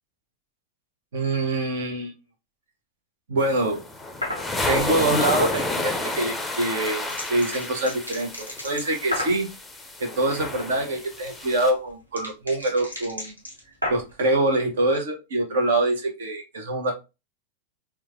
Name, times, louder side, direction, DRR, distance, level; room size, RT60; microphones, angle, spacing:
voice 1, 1.1-2.1 3.3-3.8 4.7-9.5 10.0-13.3 13.9-16.9, right 2 dB, 60° right, 4 dB, 0.8 m, -25 dB
sound 1, 3.4-11.7, left 2 dB, 5° left, 0.6 m, -30 dB
sound 2, 4.2-4.5 6.4-9.5 11.0-14.2, left 1 dB, 85° right, 1.1 m, -34 dB
4.7 x 2.3 x 2.4 m, 0.25 s
figure-of-eight pair, 90°, 0 cm